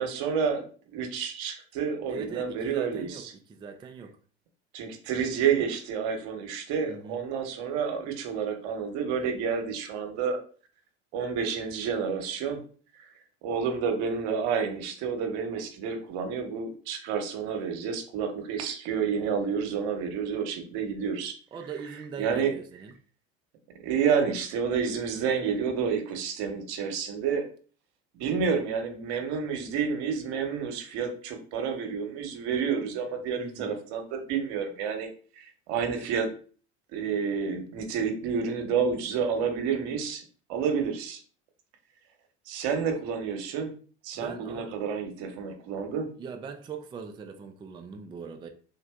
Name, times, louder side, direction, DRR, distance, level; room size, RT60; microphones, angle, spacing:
voice 1, 0.0-3.3 4.7-10.4 11.1-12.6 12.9-13.1 13.4-21.3 22.2-22.5 23.8-27.4 28.1-35.1 35.4-36.3 36.9-40.2 40.5-41.2 42.5-43.7 44.0-46.1, right 6 dB, 65° right, 0.8 m, -29 dB
voice 2, 2.1-4.2 6.9-7.2 21.5-22.9 33.4-33.7 44.1-44.8 46.2-48.5, right 5 dB, 15° right, 0.3 m, -41 dB
3.3 x 2.6 x 2.3 m
hypercardioid pair, 75°, 34 cm